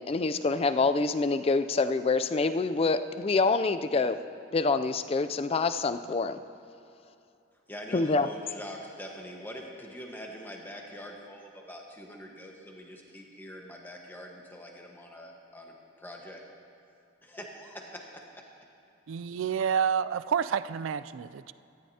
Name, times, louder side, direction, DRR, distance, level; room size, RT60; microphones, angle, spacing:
voice 1, 0.0-4.2 4.5-6.4 7.9-8.3, left 3 dB, 30° left, 11 dB, 0.3 m, -26 dB
voice 2, 7.7-16.4 17.2-18.4, equal, 10° left, 0 dB, 1.2 m, -44 dB
voice 3, 19.1-21.5, right 7 dB, 85° right, 15 dB, 0.4 m, -29 dB
18.0 x 13.5 x 2.8 m, 2.7 s
head